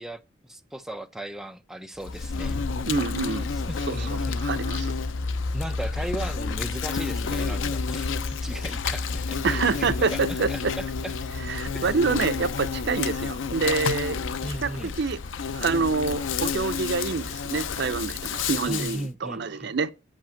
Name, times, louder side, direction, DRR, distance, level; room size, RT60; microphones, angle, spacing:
voice 1, 0.0-2.6 3.5-4.4 5.5-11.2 11.7-12.0 14.4-14.9 18.7-19.7, right 1 dB, 5° right, 0.5 m, -37 dB
Insect, 2.0-19.0, left 5 dB, 85° left, 0.5 m, -30 dB
voice 2, 2.9-3.5 3.9-4.9 9.4-10.7 11.5-14.7 15.0-15.2 15.5-19.9, right 4 dB, 65° right, 0.6 m, -27 dB
8.0 x 5.3 x 7.0 m
head